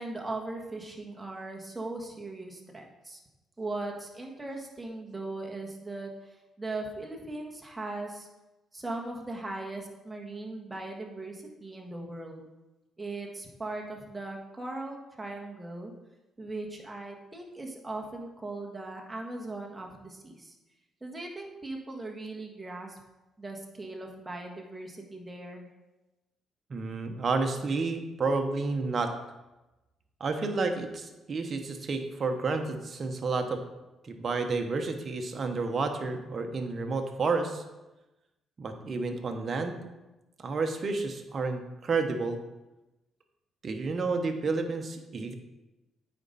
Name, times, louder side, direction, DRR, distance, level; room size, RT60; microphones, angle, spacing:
voice 1, 0.0-3.2 3.6-8.3 8.7-12.5 13.0-15.9 16.4-20.5 21.0-23.0 23.4-25.7, right 2 dB, 15° right, 0 dB, 1.5 m, -39 dB
voice 2, 26.7-29.1 30.2-33.6 34.0-37.6 38.6-39.8 40.4-42.4 43.6-45.3, right 3 dB, 45° right, 5 dB, 1.0 m, -30 dB
8.8 x 5.2 x 4.2 m, 1.0 s
cardioid pair, 90°, 0 cm